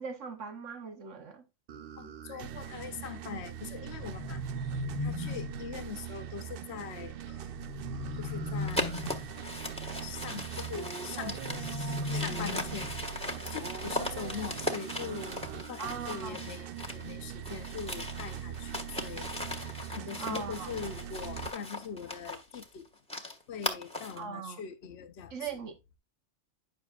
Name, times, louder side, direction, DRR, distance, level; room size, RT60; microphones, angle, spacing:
voice 1, 0.0-1.4 15.8-16.4 20.2-20.7 24.2-24.6 25.3-25.8, right 6 dB, 85° right, 1.4 m, -39 dB
sound 1, 1.7-21.5, right 9 dB, 60° right, 0.7 m, -41 dB
voice 2, 2.0-7.5 8.2-9.0 10.0-12.9 13.5-22.9 23.5-25.6, left 6 dB, 65° left, 1.1 m, -42 dB
sound 2, 3.8-5.7 7.5-9.4 11.2-13.2, left 2 dB, 25° left, 1.0 m, -37 dB
sound 3, 8.7-17.1 17.4-24.2, left 1 dB, 5° left, 1.6 m, -39 dB
10.5 x 6.8 x 2.4 m
omnidirectional pair, 1.2 m